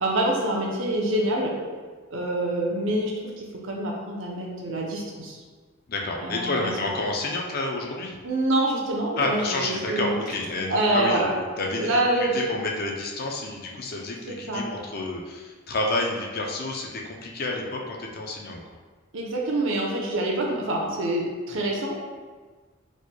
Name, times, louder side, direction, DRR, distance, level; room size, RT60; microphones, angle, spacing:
voice 1, 0.0-1.6 2.1-5.4 6.2-6.8 8.2-10.2 10.7-11.3 11.8-12.4 14.3-14.6 19.1-22.0, right 1 dB, 70° right, -2 dB, 0.7 m, -26 dB
voice 2, 5.9-8.1 9.2-12.0 12.3-18.6, left 2 dB, 45° left, 0 dB, 0.5 m, -29 dB
4.2 x 3.1 x 2.2 m, 1.4 s
head